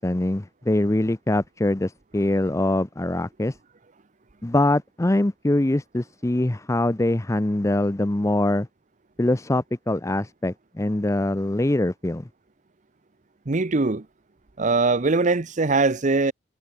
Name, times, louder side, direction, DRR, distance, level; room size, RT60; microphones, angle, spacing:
voice 1, 0.0-3.6 4.4-8.7 9.2-12.3, left 1 dB, 15° left, 0.6 m, -23 dB
voice 2, 13.5-14.0 14.6-16.3, right 3 dB, 40° right, 0.8 m, -21 dB
head